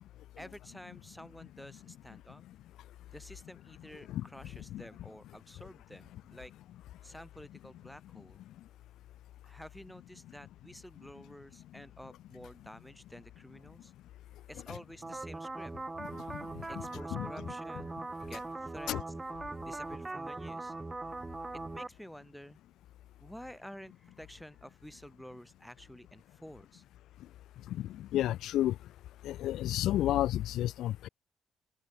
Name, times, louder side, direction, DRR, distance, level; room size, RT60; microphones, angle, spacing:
voice 1, 0.4-2.4 3.1-6.5 7.0-8.4 9.4-13.9 14.5-15.7 16.7-18.9 19.6-20.7 21.5-22.6 23.2-26.8, equal, ahead, 4.5 m, -50 dB
sound 1, 15.0-21.9, right 2 dB, 20° right, 4.6 m, -40 dB
voice 2, 16.0-16.4 16.9-17.3 18.9-19.0 27.8-28.8 29.2-31.1, left 13 dB, 80° left, 0.6 m, -32 dB
cardioid pair, 90°, 0 cm